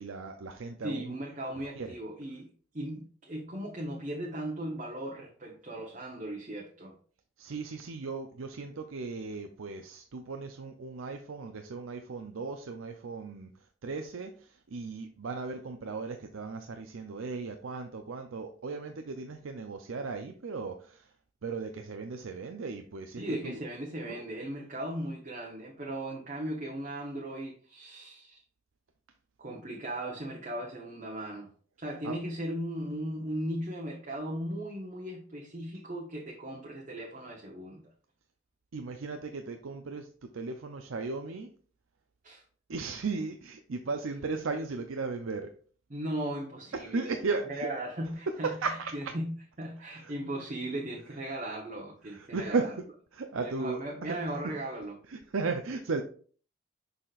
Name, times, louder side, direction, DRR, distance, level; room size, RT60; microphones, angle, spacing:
voice 1, 0.0-1.1 1.6-1.9 7.4-13.5 13.8-21.1 21.4-23.6 24.0-24.2 32.0-32.2 38.7-41.5 42.7-45.5 46.7-47.7 48.4-49.1 49.9-50.1 52.0-52.7 53.1-54.2 55.1-56.0, right 4 dB, 75° right, 0.5 m, -36 dB
voice 2, 0.8-2.5 2.7-6.9 23.2-28.4 29.4-31.5 31.8-37.8 42.2-42.4 45.9-47.2 47.5-48.5 48.9-49.3 49.6-52.7 53.3-55.0, right 1 dB, 35° right, 1.0 m, -37 dB
6.6 x 5.8 x 2.4 m
head